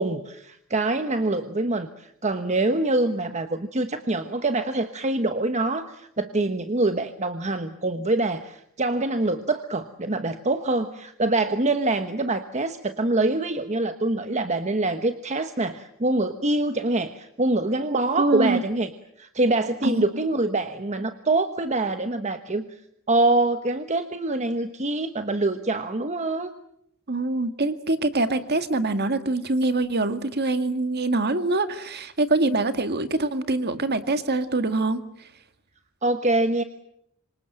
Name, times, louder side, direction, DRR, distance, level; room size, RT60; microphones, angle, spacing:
voice 1, 0.0-18.9 19.2-22.6 23.1-26.5 36.0-36.6, right 2 dB, 35° right, 8 dB, 1.2 m, -25 dB
voice 2, 18.2-18.6 19.8-20.0 27.1-35.0, right 2 dB, 50° right, 9 dB, 2.0 m, -24 dB
27.0 x 25.0 x 7.6 m, 0.73 s
head